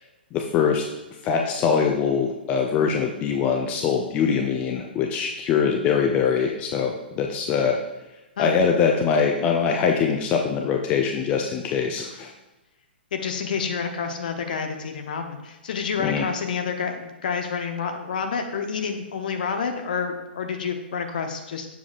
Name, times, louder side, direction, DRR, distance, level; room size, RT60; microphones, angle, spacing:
voice 1, 0.3-0.8 1.2-7.8 8.4-12.3 16.0-16.3, left 6 dB, 20° left, 3 dB, 0.5 m, -23 dB
voice 2, 13.1-21.7, left 6 dB, 50° left, 5 dB, 0.8 m, -29 dB
7.0 x 7.0 x 2.5 m, 1.0 s
figure-of-eight pair, 115°, 6 cm